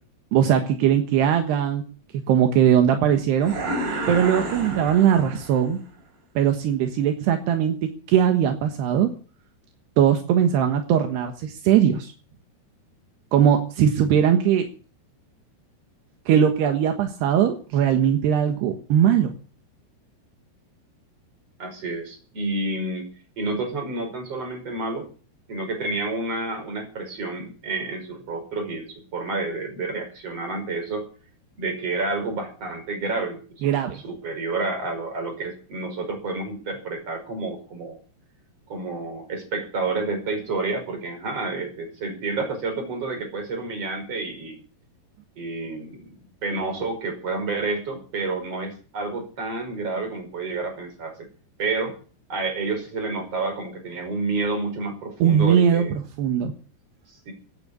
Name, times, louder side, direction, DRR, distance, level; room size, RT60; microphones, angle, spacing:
voice 1, 0.3-1.8 2.3-3.5 4.1-5.8 6.4-9.1 10.0-12.1 13.3-14.7 16.3-19.3 33.6-34.0 55.2-55.8 56.2-56.5, right 9 dB, 80° right, 6 dB, 3.5 m, -20 dB
sound 1, 3.4-5.7, right 1 dB, 65° right, 8.1 m, -30 dB
voice 2, 21.6-23.0 23.4-25.1 25.5-31.1 31.6-38.0 38.7-44.6 45.4-46.1 46.4-51.3 51.6-51.9 52.3-55.9 57.1-57.3, right 3 dB, 35° right, 5 dB, 6.2 m, -29 dB
17.0 x 9.3 x 8.4 m, 0.39 s
omnidirectional pair, 4.8 m